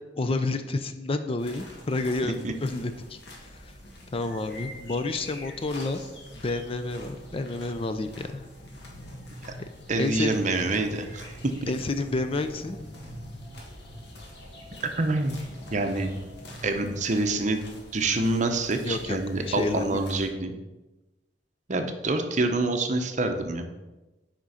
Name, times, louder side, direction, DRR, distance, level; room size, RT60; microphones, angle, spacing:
voice 1, 0.2-3.2 3.6-3.7 4.1-6.0 6.3-8.5 9.6-9.7 10.0-10.3 11.7-12.8 18.8-19.2 19.5-20.0, left 2 dB, 30° left, 9 dB, 0.4 m, -29 dB
sound 1, 1.4-20.3, left 1 dB, 65° left, 1.6 m, -45 dB
voice 2, 9.9-11.4 15.0-15.4 15.7-16.1 16.6-17.6 17.9-20.5 21.7-23.7, right 2 dB, 45° right, 6 dB, 0.8 m, -26 dB
6.1 x 5.1 x 5.6 m, 1.1 s
head